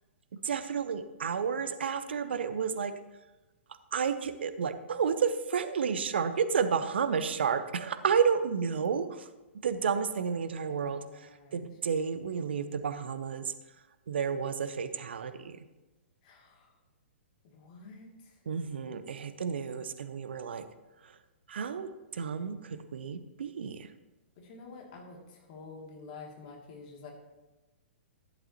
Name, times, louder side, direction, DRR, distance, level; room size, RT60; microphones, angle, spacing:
voice 1, 0.4-2.9 3.9-9.3 9.6-13.5 14.1-15.6 18.5-20.7 21.0-21.2 21.5-23.9, right 6 dB, 60° right, 11 dB, 0.8 m, -31 dB
voice 2, 9.9-11.7 16.2-16.7 17.4-18.4 24.4-27.1, left 3 dB, 45° left, 0 dB, 2.4 m, -49 dB
12.5 x 10.5 x 2.9 m, 1.1 s
figure-of-eight pair, 115°, 7 cm